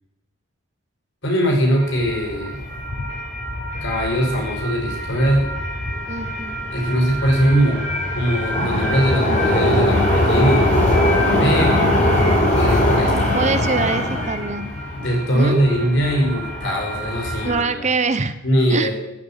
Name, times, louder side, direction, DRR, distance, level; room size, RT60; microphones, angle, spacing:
voice 1, 1.2-2.6 3.8-5.5 6.7-7.8 8.1-10.6 11.4-12.0 12.5-13.3 14.9-17.9 18.4-18.9, equal, 55° left, 0 dB, 5.6 m, -20 dB
sound 1, 1.7-17.6, left 1 dB, 35° left, 7.0 m, -22 dB
voice 2, 6.0-6.5 13.3-14.7 15.3-15.6 17.4-18.3 18.7-18.9, right 4 dB, 35° right, 12 dB, 0.8 m, -23 dB
15.0 x 9.5 x 9.1 m, 0.91 s
head